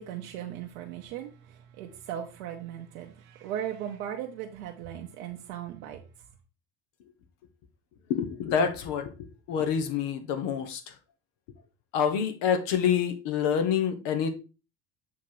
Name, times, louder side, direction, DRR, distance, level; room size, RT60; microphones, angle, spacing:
voice 1, 0.0-6.0, right 10 dB, 80° right, 0.9 m, -38 dB
voice 2, 8.1-11.0 11.9-14.3, left 7 dB, 70° left, 1.3 m, -27 dB
7.1 x 2.9 x 4.6 m
hypercardioid pair, 75°, 43 cm